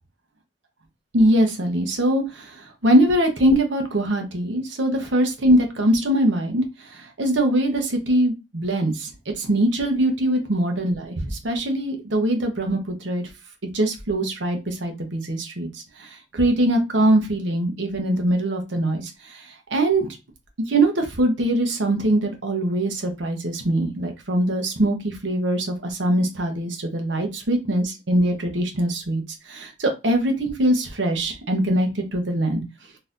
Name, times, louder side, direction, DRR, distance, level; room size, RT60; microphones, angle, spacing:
voice 1, 1.1-9.1 9.4-13.2 13.7-20.1 20.7-32.6, right 1 dB, 70° right, 3 dB, 0.9 m, -22 dB
3.9 x 2.7 x 2.5 m, 0.26 s
head